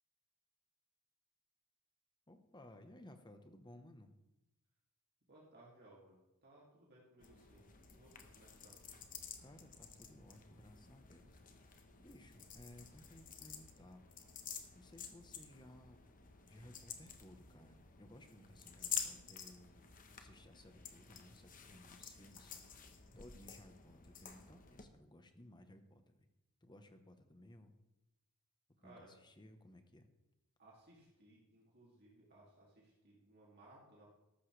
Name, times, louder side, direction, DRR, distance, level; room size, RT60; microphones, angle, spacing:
voice 1, 2.3-4.1 9.4-11.3 12.0-14.0 14.7-16.0 16.5-19.9 20.2-22.6 23.1-26.3 26.6-27.7 28.8-30.1, left 1 dB, 20° left, 7 dB, 1.1 m, -59 dB
voice 2, 5.3-8.8 28.8-29.2 30.6-34.1, right 1 dB, 50° right, -4 dB, 2.7 m, -63 dB
sound 1, 7.2-24.8, left 7 dB, 40° left, 1.1 m, -50 dB
14.0 x 12.0 x 3.4 m, 0.95 s
head